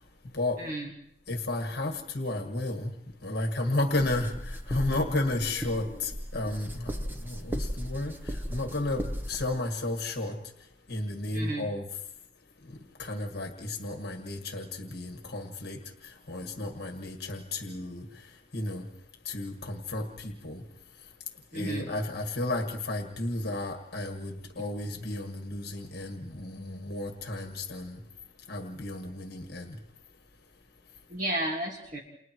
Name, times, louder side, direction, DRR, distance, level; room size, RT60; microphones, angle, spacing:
voice 1, 0.6-0.9 11.3-11.7 21.5-21.9 31.1-32.0, right 1 dB, 40° right, 0 dB, 1.8 m, -32 dB
voice 2, 1.3-2.9 3.2-10.4 10.9-11.9 12.6-18.9 19.3-20.6 21.5-28.0 28.5-29.8, left 2 dB, 55° left, 4 dB, 1.7 m, -33 dB
sound 1, 4.0-9.4, equal, 10° right, 0.8 m, -36 dB
29.5 x 28.5 x 3.1 m, 0.73 s
head